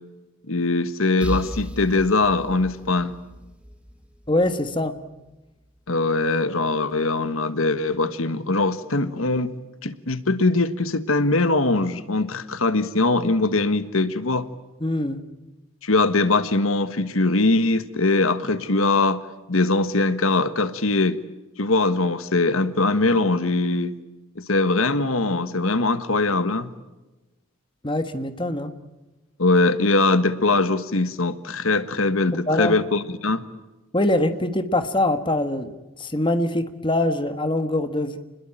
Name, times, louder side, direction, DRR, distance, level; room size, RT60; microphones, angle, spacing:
voice 1, 0.5-3.1 5.9-9.5 9.8-14.5 15.8-21.2 21.6-23.9 24.3-26.7 29.4-33.4, left 3 dB, 85° left, 12 dB, 1.4 m, -21 dB
sound 1, 1.2-4.9, equal, 5° right, 1.1 m, -36 dB
voice 2, 4.3-4.9 14.8-15.2 27.8-28.7 32.3-32.8 33.9-38.2, left 1 dB, 25° left, 9 dB, 1.5 m, -23 dB
28.5 x 21.5 x 8.9 m, 1.1 s
head